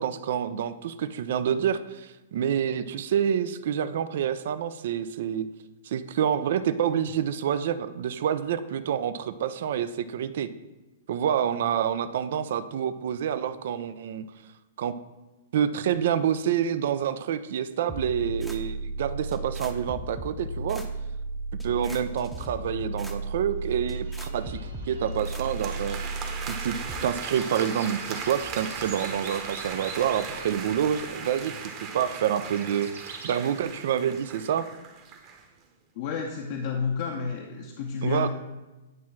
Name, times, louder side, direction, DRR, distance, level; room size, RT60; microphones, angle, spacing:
voice 1, 0.0-5.5 5.8-10.5 11.1-14.2 14.8-15.0 15.5-20.8 21.6-24.6 24.9-26.0 26.5-26.8 27.0-31.5 31.9-34.7 38.0-38.3, right 9 dB, 60° right, 13 dB, 0.4 m, -27 dB
sound 1, 17.9-27.0, right 2 dB, ahead, 0.7 m, -35 dB
sound 2, 23.7-33.4, right 4 dB, 80° right, 1.4 m, -45 dB
sound 3, 25.1-35.4, right 5 dB, 30° right, 1.0 m, -38 dB
voice 2, 36.0-38.3, left 5 dB, 55° left, 1 dB, 0.8 m, -30 dB
9.2 x 3.1 x 6.0 m, 1.1 s
hypercardioid pair, 125°, 0 cm